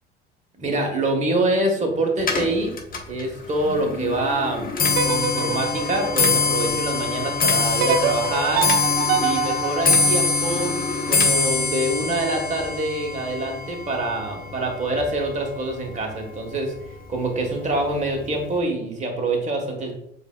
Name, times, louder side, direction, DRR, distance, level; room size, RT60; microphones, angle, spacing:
voice 1, 0.6-2.8 3.1-8.7 9.2-16.7 17.1-20.0, right 2 dB, 25° right, 1 dB, 1.3 m, -25 dB
Clock, 2.2-15.5 15.9-16.3 17.1-17.2 17.6-17.9 18.2-18.3, left 4 dB, 30° left, 1.1 m, -24 dB
sound 1, 4.9-7.1 7.8-10.9, right 6 dB, 65° right, 0.6 m, -26 dB
7.1 x 2.7 x 2.3 m, 0.78 s
hypercardioid pair, 65°, 30 cm